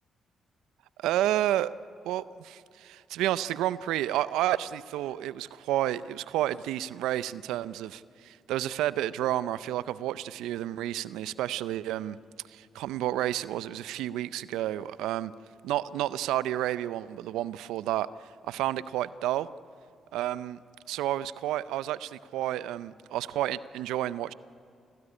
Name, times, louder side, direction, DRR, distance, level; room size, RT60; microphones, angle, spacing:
voice 1, 1.0-1.7 2.0-12.2 12.5-15.3 15.6-19.5 20.1-20.6 20.9-24.3, right 13 dB, 80° right, 18 dB, 0.5 m, -30 dB
25.5 x 17.5 x 9.9 m, 2.6 s
hypercardioid pair, 50°, 0 cm